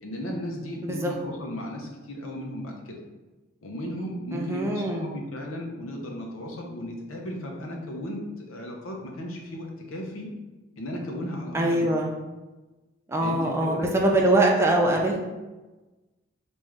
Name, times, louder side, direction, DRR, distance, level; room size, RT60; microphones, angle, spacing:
voice 1, 0.0-3.0 3.6-10.3 10.8-11.9 13.2-13.9, equal, 90° left, 0 dB, 0.7 m, -35 dB
voice 2, 4.3-5.1 11.5-12.1 13.1-15.2, right 1 dB, 15° right, 0 dB, 0.3 m, -23 dB
3.5 x 2.6 x 3.2 m, 1.2 s
head